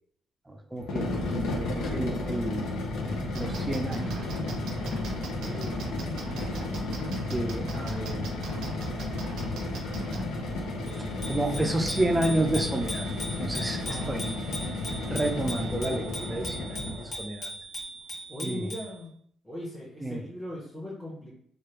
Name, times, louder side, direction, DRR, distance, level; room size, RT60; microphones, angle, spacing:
voice 1, 0.5-2.7 3.3-4.2 5.4-5.9 7.2-8.2 11.3-13.1 13.4-14.4 15.1-17.5 18.4-18.7 20.0-20.2, right 1 dB, 15° right, 3 dB, 0.4 m, -31 dB
sound 1, 0.8-17.2, left 2 dB, 85° left, 0.6 m, -33 dB
sound 2, 3.3-10.2, right 4 dB, 80° right, 0.6 m, -40 dB
Bicycle bell, 10.9-18.9, equal, 55° left, 1.2 m, -39 dB
voice 2, 13.8-14.2 18.3-19.1 19.4-21.3, equal, 10° left, -6 dB, 0.9 m, -38 dB
3.2 x 2.4 x 3.0 m, 0.63 s
cardioid pair, 90°, 0 cm